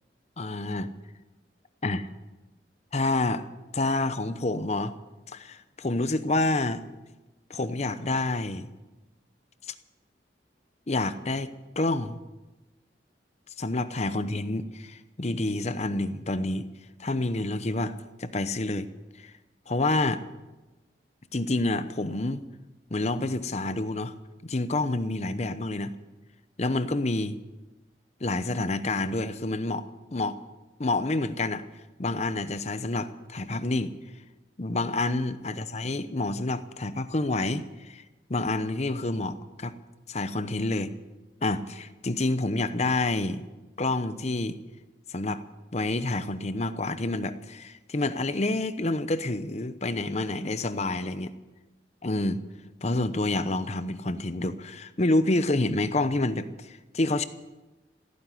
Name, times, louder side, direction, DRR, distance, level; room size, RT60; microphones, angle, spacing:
voice 1, 0.4-0.9 1.8-2.1 2.9-3.5 3.7-4.9 5.3-6.8 7.5-8.7 10.9-11.5 11.8-12.2 13.6-16.7 17.0-18.9 19.2-19.3 19.7-20.2 21.3-22.4 22.9-24.1 24.4-25.9 26.6-27.4 28.2-30.4 30.8-31.6 32.0-33.9 34.6-38.0 38.3-39.7 40.1-40.9 41.4-43.4 43.8-44.6 45.1-45.4 45.7-51.3 52.0-52.4 52.8-57.2, left 2 dB, 40° left, 12 dB, 0.9 m, -28 dB
15.5 x 9.3 x 9.8 m, 1.1 s
head